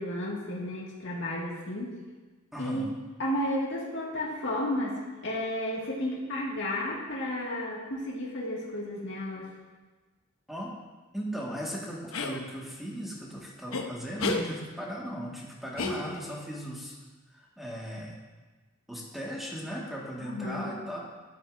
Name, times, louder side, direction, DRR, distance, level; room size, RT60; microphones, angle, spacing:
voice 1, 0.0-1.9 2.6-2.8 3.2-5.0 5.2-9.5 20.2-20.7, left 1 dB, 60° left, -4 dB, 1.9 m, -32 dB
voice 2, 2.5-2.9 10.5-10.7 11.1-16.9 17.3-18.1 18.9-21.0, equal, ahead, -4 dB, 1.7 m, -37 dB
sound 1, 12.1-12.4 13.7-13.9 14.2-14.5 15.8-16.4, left 3 dB, 75° left, 0.8 m, -31 dB
13.0 x 8.4 x 2.6 m, 1.3 s
head